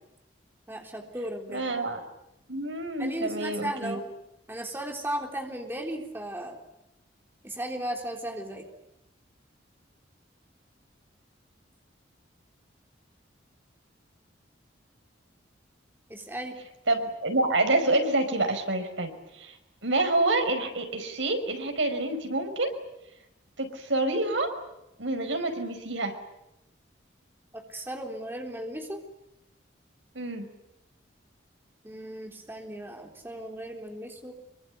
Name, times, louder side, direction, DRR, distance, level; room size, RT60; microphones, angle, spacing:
voice 1, 0.7-1.7 3.0-4.0 4.5-6.6 7.4-8.6 16.1-16.6 27.5-29.0 31.8-34.3, right 1 dB, 10° right, 2 dB, 3.7 m, -36 dB
voice 2, 1.5-2.0 2.5-4.0 16.9-19.6 19.8-22.7 23.6-24.5 25.0-26.2 30.2-30.5, right 2 dB, 80° right, 6 dB, 5.4 m, -27 dB
25.5 x 24.0 x 9.3 m, 0.90 s
head